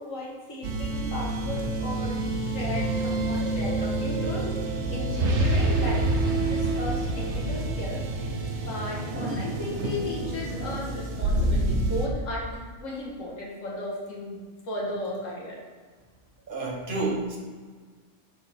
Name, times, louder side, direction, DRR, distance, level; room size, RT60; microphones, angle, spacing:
voice 1, 0.0-14.4 14.7-15.6, left 1 dB, 80° left, -3 dB, 2.1 m, -36 dB
sound 1, 0.6-12.1, right 2 dB, 65° right, 1.1 m, -27 dB
voice 2, 16.5-17.4, right 3 dB, 45° right, -1 dB, 1.4 m, -29 dB
10.0 x 4.6 x 3.7 m, 1.5 s
omnidirectional pair, 1.3 m